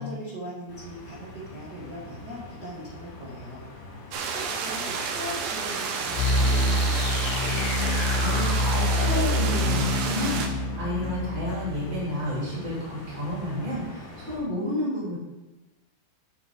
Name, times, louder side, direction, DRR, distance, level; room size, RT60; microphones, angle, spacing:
voice 1, 0.0-3.6 4.0-7.6, equal, 60° right, -9 dB, 1.0 m, -40 dB
sound 1, 0.7-14.4, left 3 dB, 55° left, 4.0 m, -44 dB
sound 2, 4.1-10.5, right 5 dB, 80° right, 2.2 m, -31 dB
sound 3, 6.1-12.9, left 1 dB, 90° left, 3.0 m, -26 dB
voice 2, 7.9-15.2, left 1 dB, 15° right, -8 dB, 2.0 m, -31 dB
9.5 x 7.7 x 3.6 m, 1.1 s
omnidirectional pair, 5.2 m